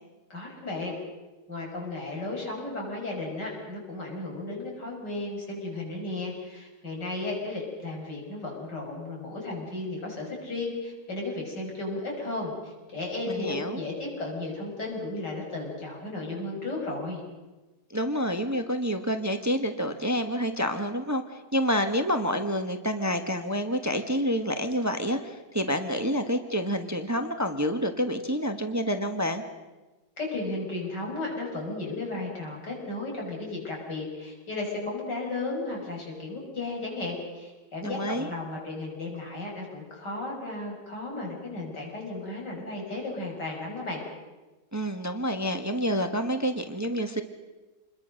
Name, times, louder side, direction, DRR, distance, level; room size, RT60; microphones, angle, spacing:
voice 1, 0.3-0.9 1.5-17.2 30.2-44.0, left 2 dB, 80° left, -1 dB, 6.8 m, -34 dB
voice 2, 13.3-13.8 17.9-21.2 21.5-29.4 37.8-38.3 44.7-47.2, equal, 10° right, 6 dB, 1.3 m, -28 dB
27.5 x 21.5 x 6.5 m, 1.1 s
omnidirectional pair, 1.8 m